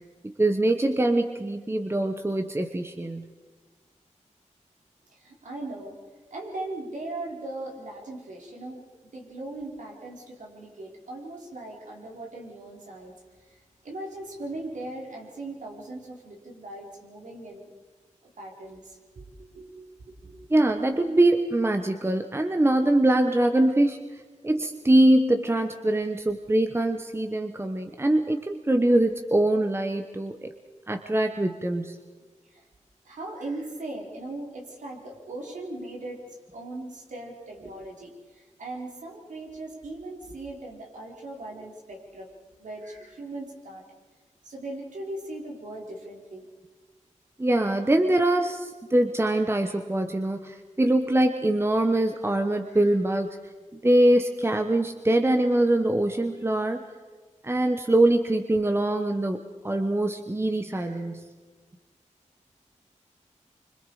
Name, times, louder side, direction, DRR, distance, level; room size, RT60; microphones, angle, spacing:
voice 1, 0.2-3.3 20.5-24.0 24.4-30.5 30.9-32.0 47.4-53.3 53.7-56.8 57.4-59.4 59.6-61.3, right 1 dB, 20° right, 5 dB, 1.1 m, -23 dB
voice 2, 5.1-5.9 6.3-8.8 9.1-17.7 18.4-19.9 20.2-21.0 32.4-32.6 33.0-42.3 42.6-43.8 44.4-46.5 52.6-52.9 60.7-61.1, right 2 dB, 90° right, -1 dB, 4.7 m, -39 dB
26.0 x 25.5 x 5.0 m, 1.4 s
wide cardioid pair, 75°, 13 cm